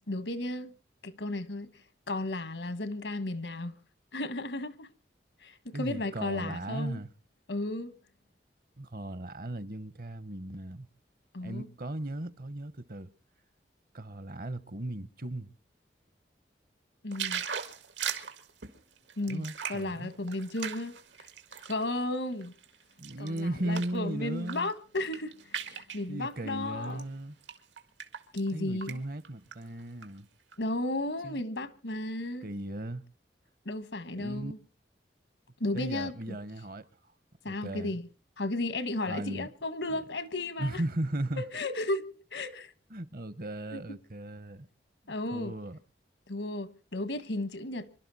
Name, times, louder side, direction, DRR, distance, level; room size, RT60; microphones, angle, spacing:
voice 1, 0.1-0.7 1.0-1.7 2.1-3.7 4.1-4.9 5.4-7.0 7.5-7.9 11.3-11.7 17.0-17.4 19.2-20.9 21.6-22.5 23.2-27.0 28.3-29.0 30.6-32.5 33.6-34.6 35.6-36.4 37.4-38.1 38.4-40.8 41.4-42.7 43.7-44.0 45.1-45.5 46.3-47.9, left 2 dB, 80° left, 1.3 m, -34 dB
voice 2, 5.7-7.1 8.8-10.9 11.4-13.1 13.9-15.5 19.3-20.1 23.0-24.7 26.1-27.4 28.5-30.3 31.2-31.4 32.4-33.0 34.2-34.5 35.7-36.9 37.5-37.9 39.1-39.5 39.9-40.0 40.6-41.4 42.9-44.7 45.0-45.8, right 1 dB, 50° right, 0.9 m, -36 dB
sound 1, 17.1-21.8 22.3-24.0 24.4-24.7 25.0-26.0 26.8-27.0 27.4-28.5 28.8-29.0 29.2-30.1 30.5-30.6, right 8 dB, 85° right, 1.8 m, -38 dB
26.5 x 12.0 x 4.1 m
head